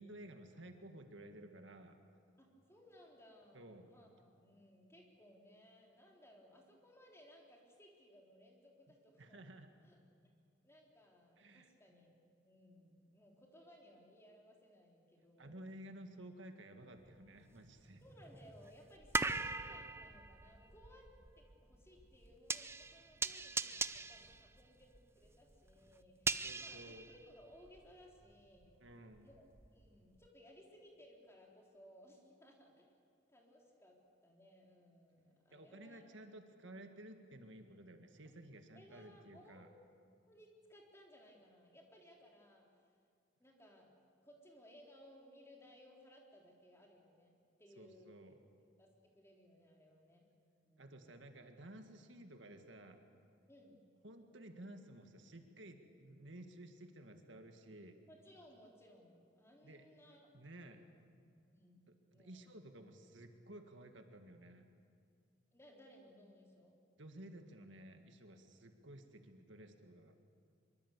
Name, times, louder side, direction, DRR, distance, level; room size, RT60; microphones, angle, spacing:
voice 1, 0.0-2.0 3.5-3.9 9.2-9.7 11.4-11.7 15.4-18.0 26.4-27.1 28.8-29.3 35.5-39.7 47.8-48.4 50.8-53.0 54.0-58.0 59.6-59.8 60.3-60.8 62.1-64.7 67.0-70.2, right 1 dB, 70° right, 6 dB, 1.9 m, -54 dB
voice 2, 2.4-9.4 9.8-10.0 10.6-15.6 18.0-28.8 29.2-29.4 29.7-33.0 33.3-36.0 38.7-39.7 40.3-42.9 43.4-43.9 44.2-47.3 47.6-48.2 48.8-50.3 50.6-51.3 53.5-53.8 58.1-60.3 60.7-61.0 61.5-61.8 62.1-62.4 65.5-66.8, equal, 15° left, 0 dB, 3.8 m, -62 dB
sound 1, 17.1-17.2 17.8-27.9 28.2-29.9 30.2-30.3, right 3 dB, 15° right, 0.5 m, -41 dB
24.5 x 23.5 x 8.4 m, 2.3 s
head